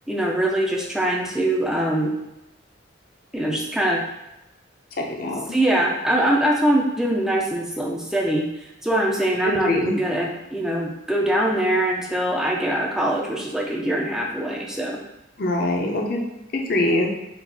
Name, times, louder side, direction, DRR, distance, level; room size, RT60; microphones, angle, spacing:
voice 1, 0.1-2.1 3.3-4.0 5.5-8.5 8.8-15.0, right 1 dB, 5° right, -1 dB, 0.6 m, -23 dB
voice 2, 5.0-5.4 9.4-9.9 15.4-16.2 16.5-17.1, left 1 dB, 50° left, 1 dB, 0.7 m, -23 dB
4.6 x 2.6 x 4.0 m, 0.92 s
head